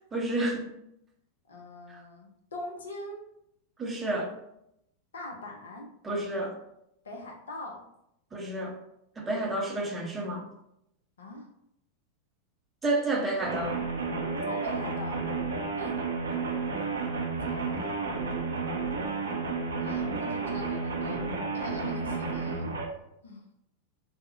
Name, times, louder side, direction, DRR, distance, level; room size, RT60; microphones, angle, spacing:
voice 1, 0.1-0.7 3.8-4.3 6.0-6.5 8.3-8.8 9.2-10.5 12.8-13.8, right 2 dB, 15° right, 0 dB, 0.6 m, -30 dB
voice 2, 1.5-3.3 5.1-5.9 7.0-7.9 11.2-11.5 14.4-15.3 15.8-16.0 17.5-17.9 19.8-21.2 21.5-22.7 23.2-23.5, left 1 dB, 65° left, 2 dB, 0.5 m, -42 dB
sound 1, 13.4-22.8, right 4 dB, 70° right, 0.4 m, -31 dB
3.5 x 2.0 x 2.7 m, 0.79 s
figure-of-eight pair, 90°, 0 cm